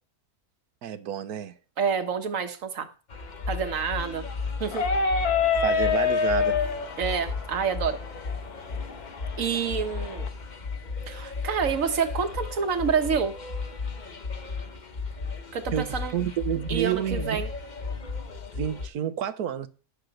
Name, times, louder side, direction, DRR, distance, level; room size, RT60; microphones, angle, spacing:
voice 1, 0.8-1.5 5.5-6.6 15.7-15.9 16.1-17.4 18.5-19.7, right 10 dB, 75° right, 1.3 m, -29 dB
voice 2, 1.8-2.9 3.5-4.3 4.6-4.8 7.0-8.0 9.4-10.3 11.1-13.4 15.5-16.1 16.7-17.5, right 6 dB, 60° right, 1.6 m, -28 dB
sound 1, 3.1-18.9, left 4 dB, 35° left, 1.0 m, -35 dB
sound 2, 4.7-10.3, left 5 dB, 80° left, 1.6 m, -27 dB
10.5 x 6.8 x 6.5 m
omnidirectional pair, 1.6 m